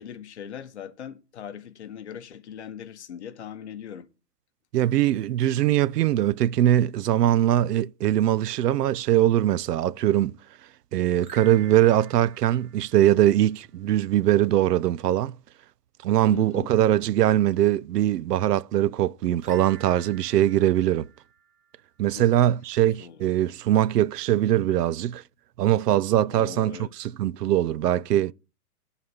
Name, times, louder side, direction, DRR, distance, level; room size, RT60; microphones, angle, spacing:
voice 1, 0.0-4.1 16.3-16.7 22.1-22.3 23.0-23.2 26.3-26.9, left 8 dB, 45° left, 1.0 m, -40 dB
voice 2, 4.7-10.4 10.9-15.4 16.0-21.1 22.0-25.2 25.6-28.3, right 12 dB, 80° right, 0.5 m, -22 dB
sound 1, 11.1-13.6 19.4-22.0, right 7 dB, 65° right, 1.5 m, -49 dB
11.0 x 4.1 x 7.0 m
hypercardioid pair, 165°, 48 cm